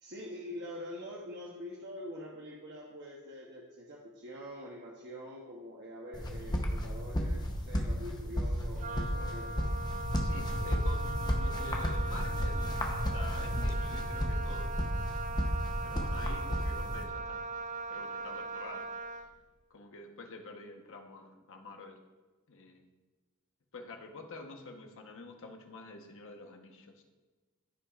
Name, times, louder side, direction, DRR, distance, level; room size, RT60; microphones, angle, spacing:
voice 1, 0.0-9.5, left 1 dB, 50° right, -2 dB, 1.0 m, -45 dB
sound 1, 6.1-17.0, equal, 20° left, 0.9 m, -33 dB
Wind instrument woodwind instrument, 8.8-19.3, right 3 dB, 35° right, 0.4 m, -40 dB
voice 2, 10.2-14.7 15.8-17.4 17.9-18.9 19.7-22.0 22.5-22.8 23.7-27.0, left 3 dB, 60° left, 3 dB, 1.1 m, -48 dB
15.0 x 5.9 x 2.5 m, 1.2 s
head